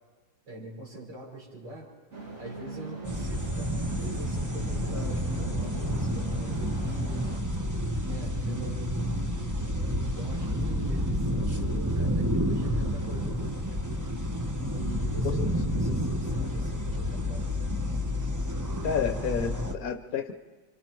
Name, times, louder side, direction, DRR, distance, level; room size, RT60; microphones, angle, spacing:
voice 1, 0.5-1.9 2.4-7.4 8.0-9.6 10.0-13.9 14.7-17.5, right 2 dB, 75° right, -3 dB, 5.9 m, -43 dB
sound 1, 2.1-7.4, right 2 dB, 35° right, 2.6 m, -43 dB
sound 2, 3.0-19.8, equal, 15° right, 0.6 m, -29 dB
voice 2, 18.8-20.3, left 7 dB, 60° left, 8 dB, 1.1 m, -30 dB
29.0 x 26.0 x 4.6 m, 1.4 s
omnidirectional pair, 2.1 m